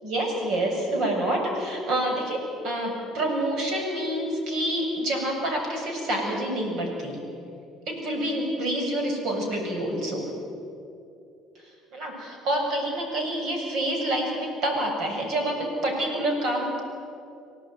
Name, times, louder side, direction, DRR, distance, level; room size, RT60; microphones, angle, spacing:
voice 1, 0.0-7.2 7.9-10.3 11.9-16.8, right 1 dB, 65° right, 2 dB, 7.6 m, -27 dB
24.5 x 18.0 x 9.4 m, 2.5 s
supercardioid pair, 90°, 0 cm